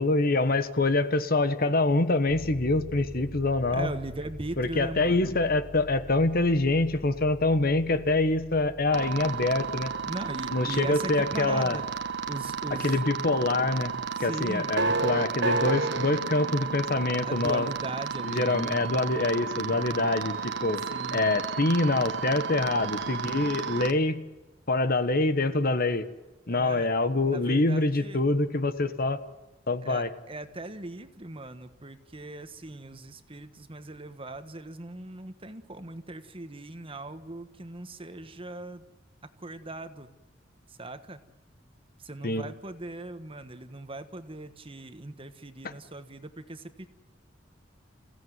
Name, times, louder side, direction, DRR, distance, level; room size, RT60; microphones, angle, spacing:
voice 1, 0.0-3.9 4.6-9.9 10.5-11.8 12.8-13.9 14.2-17.7 18.2-20.8 21.1-24.2 24.7-26.1 26.5-29.2 29.7-30.1 42.2-42.5 45.6-45.7, left 2 dB, 50° left, 12 dB, 1.2 m, -25 dB
sound 1, 2.3-14.1, right 1 dB, 25° left, 3.5 m, -47 dB
voice 2, 3.7-5.3 10.0-11.9 12.3-13.0 14.2-14.7 17.2-18.9 19.2-19.4 20.9-21.2 26.5-26.9 27.2-28.2 29.8-38.9 39.4-40.1 40.8-41.2 42.0-46.9, right 2 dB, 30° right, 10 dB, 1.3 m, -39 dB
sound 2, 8.9-23.9, right 5 dB, 65° right, 1.2 m, -32 dB
27.5 x 16.5 x 9.4 m, 1.1 s
head